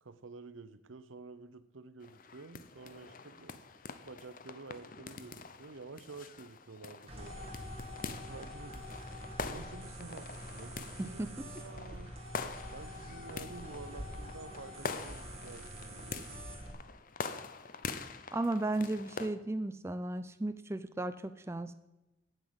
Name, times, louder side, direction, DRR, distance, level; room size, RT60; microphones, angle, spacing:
voice 1, 0.0-3.6 4.0-7.5 8.3-8.8 9.4-12.1 12.7-16.3, right 3 dB, 80° right, 14 dB, 0.7 m, -50 dB
sound 1, 2.0-19.3, left 4 dB, 45° left, 0.6 m, -45 dB
sound 2, 7.1-16.7, equal, 30° right, 2.2 m, -45 dB
voice 2, 11.0-11.5 18.3-21.7, right 2 dB, 15° right, 11 dB, 0.3 m, -35 dB
8.9 x 7.8 x 8.0 m, 1.0 s
head